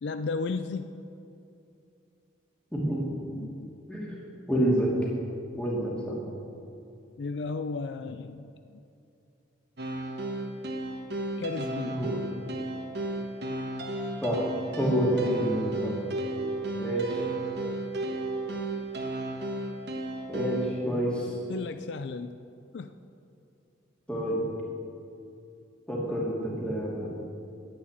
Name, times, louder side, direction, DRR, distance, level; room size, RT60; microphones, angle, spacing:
voice 1, 0.0-0.9 3.3-3.7 7.2-8.8 11.4-12.0 21.5-22.4 22.7-23.0, left 4 dB, 60° left, 10 dB, 0.4 m, -34 dB
voice 2, 2.7-3.0 3.9-4.2 4.5-4.9 5.5-6.2 11.9-12.2 14.2-14.5 14.8-15.9 16.8-17.2 20.3-21.4 24.1-24.4 25.9-27.1, equal, 5° left, -5 dB, 2.6 m, -28 dB
sound 1, 9.8-20.7, right 2 dB, 60° right, 1.3 m, -33 dB
10.5 x 8.5 x 8.8 m, 2.6 s
head